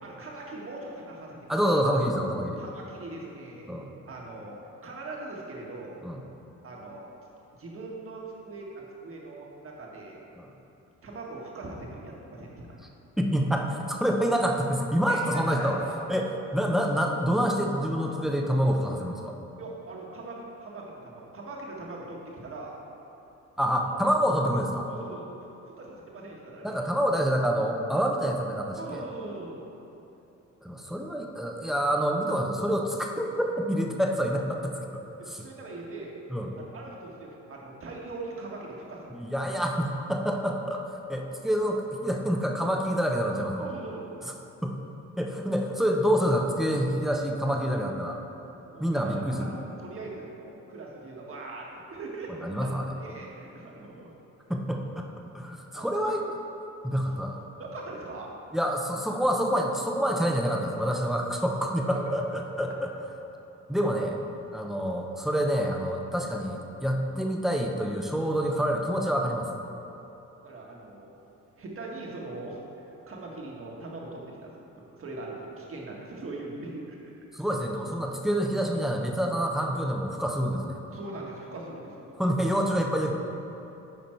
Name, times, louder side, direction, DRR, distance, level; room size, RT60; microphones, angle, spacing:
voice 1, 0.0-1.5 2.6-3.7 4.1-4.6 4.8-5.9 6.6-7.0 7.5-10.2 11.0-12.8 15.1-16.0 19.6-22.7 23.9-24.0 24.9-25.3 25.7-26.8 28.8-29.7 35.2-36.1 36.6-39.1 43.6-44.1 48.7-52.7 53.0-54.1 55.7-56.2 57.6-58.3 61.9-62.0 64.0-64.1 64.7-64.9 70.4-71.1 71.6-72.6 73.1-74.5 75.0-77.1 80.9-82.1, right 2 dB, 45° right, -2 dB, 1.6 m, -41 dB
voice 2, 1.5-2.6 3.7-3.9 6.0-6.2 10.4-10.5 13.2-15.8 16.1-19.4 23.6-24.9 26.6-29.0 30.6-35.4 36.3-36.5 39.1-40.8 41.1-43.7 44.6-44.8 45.2-48.2 48.8-49.5 52.4-53.0 54.5-55.1 55.3-56.4 56.8-57.4 58.5-62.9 63.7-64.1 64.5-69.5 77.3-80.8 82.2-83.1, equal, ahead, 1 dB, 0.8 m, -27 dB
9.5 x 5.1 x 4.5 m, 2.9 s
cardioid pair, 90°, 30 cm